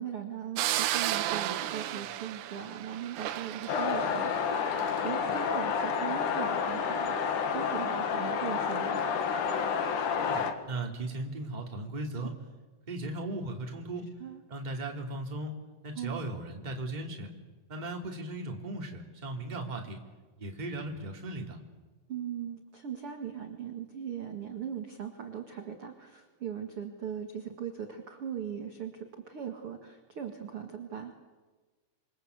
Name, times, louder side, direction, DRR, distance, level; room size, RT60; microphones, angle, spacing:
voice 1, 0.0-4.3 5.0-9.1 14.2-14.4 16.0-16.2 22.1-31.1, right 8 dB, 50° right, 4 dB, 1.8 m, -39 dB
sound 1, 0.6-5.0, right 13 dB, 75° right, 3.0 m, -33 dB
sound 2, 3.7-10.5, left 6 dB, 55° left, 2.6 m, -30 dB
voice 2, 10.2-12.3 12.9-14.1 14.5-15.5 15.8-17.3 17.7-20.0 20.4-21.6, right 2 dB, 15° right, 1 dB, 2.1 m, -37 dB
27.5 x 24.0 x 8.3 m, 1.3 s
omnidirectional pair, 5.2 m